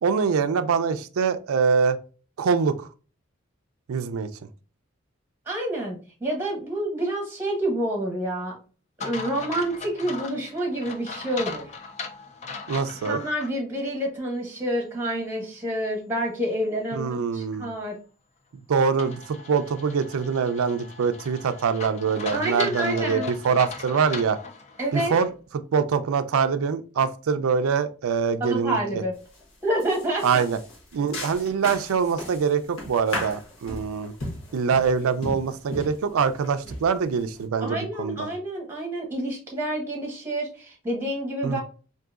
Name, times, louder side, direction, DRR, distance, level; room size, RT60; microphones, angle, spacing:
voice 1, 0.0-2.0 2.4-2.9 3.9-4.3 12.7-13.2 16.9-17.7 18.7-24.4 24.9-25.3 25.7-29.0 30.2-30.6 30.9-34.1 34.5-38.3 41.4-41.6, right 6 dB, 90° right, 0.4 m, -24 dB
voice 2, 5.5-8.6 9.0-11.7 13.1-17.9 22.3-23.3 24.8-25.1 28.4-29.1 29.6-30.5 37.6-41.6, right 1 dB, 10° right, 1.0 m, -28 dB
sound 1, 9.0-13.5 14.0-14.1 19.0-25.3, left 5 dB, 30° left, 0.3 m, -38 dB
sound 2, 29.2-29.4 29.8-37.4, left 1 dB, 75° left, 1.1 m, -36 dB
3.8 x 2.6 x 2.3 m
head